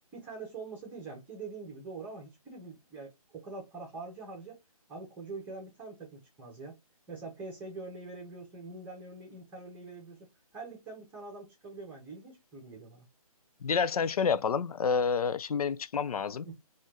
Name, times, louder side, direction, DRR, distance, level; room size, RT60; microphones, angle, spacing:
voice 1, 0.1-4.6 4.9-6.8 7.1-13.1 16.4-16.5, right 3 dB, 10° right, 0.9 m, -44 dB
voice 2, 13.6-16.5, left 6 dB, 75° left, 0.4 m, -29 dB
4.1 x 2.5 x 2.8 m
hypercardioid pair, 155°, 19 cm